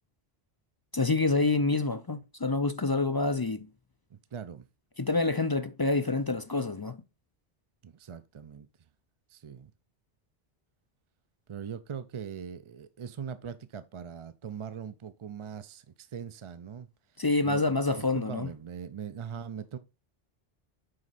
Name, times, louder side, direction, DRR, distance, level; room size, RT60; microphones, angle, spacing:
voice 1, 0.9-3.7 5.0-7.0 17.2-18.5, left 3 dB, 35° left, 0.3 m, -27 dB
voice 2, 4.1-4.6 7.8-8.9 9.3-9.7 11.5-17.2 17.4-19.8, right 7 dB, 45° right, 0.4 m, -41 dB
7.7 x 5.3 x 4.1 m
omnidirectional pair, 1.0 m